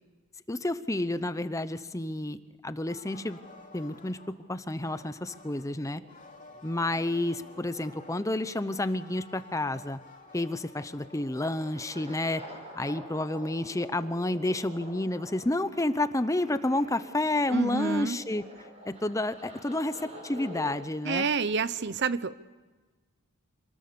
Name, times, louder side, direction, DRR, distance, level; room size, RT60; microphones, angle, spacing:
voice 1, 0.5-2.4 2.6-3.4 3.7-4.2 4.5-6.0 6.6-10.0 10.3-12.4 12.8-18.4 18.9-21.2, left 1 dB, 15° left, 12 dB, 0.7 m, -30 dB
sound 1, 2.7-20.7, equal, 30° right, 6.0 m, -49 dB
sound 2, 2.9-4.3 4.8-5.7 6.1-8.2 8.7-18.4, left 2 dB, 35° left, 2.7 m, -54 dB
voice 2, 17.5-18.2 21.0-22.4, right 5 dB, 55° right, 15 dB, 0.7 m, -28 dB
26.5 x 20.0 x 6.9 m, 1.3 s
head